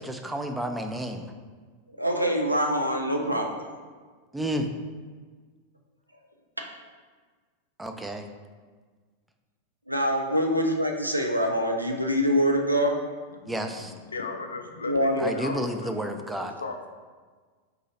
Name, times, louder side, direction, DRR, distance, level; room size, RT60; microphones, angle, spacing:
voice 1, 0.0-1.3 4.3-4.7 7.8-8.2 13.5-13.9 15.2-16.6, equal, 5° right, 5 dB, 0.4 m, -31 dB
voice 2, 1.9-3.6 6.6-6.7 9.9-13.0 14.8-15.6, equal, 90° right, 2 dB, 0.5 m, -25 dB
voice 3, 13.4-15.9 16.6-16.9, left 3 dB, 75° left, 5 dB, 0.4 m, -37 dB
3.9 x 2.7 x 4.2 m, 1.5 s
figure-of-eight pair, 90°, 0 cm